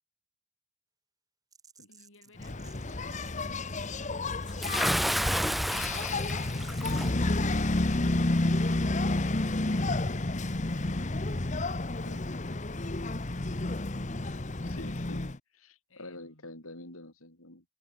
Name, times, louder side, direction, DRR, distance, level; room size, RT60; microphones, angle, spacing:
sound 1, 1.5-3.3 3.6-4.0 4.3-4.7 6.1-7.9, right 6 dB, 15° right, 4.4 m, -56 dB
voice 1, 1.8-4.6 12.4-14.7 15.9-16.5, left 2 dB, 65° left, 5.9 m, -59 dB
Engine, 2.4-15.4, left 2 dB, 35° left, 1.1 m, -30 dB
Bathtub (filling or washing) / Splash splatter, 4.6-7.1, equal, ahead, 0.3 m, -30 dB
voice 2, 14.6-15.2 15.5-17.6, left 2 dB, 80° left, 7.7 m, -47 dB
head